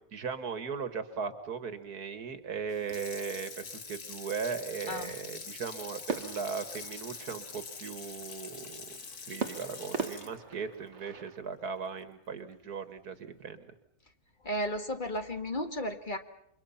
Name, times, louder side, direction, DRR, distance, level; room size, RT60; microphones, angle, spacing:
voice 1, 0.0-9.0 9.3-13.7, right 5 dB, 90° right, 10 dB, 2.3 m, -38 dB
Water tap faucet / Sink (filling or washing), 2.7-11.9 12.3-12.4, left 5 dB, 90° left, 2.5 m, -45 dB
sound 1, 6.1-7.6 9.4-11.5, right 5 dB, 50° right, 1.5 m, -39 dB
voice 2, 14.4-16.2, equal, 30° left, 7 dB, 1.8 m, -34 dB
29.0 x 24.5 x 5.8 m, 0.71 s
omnidirectional pair, 1.6 m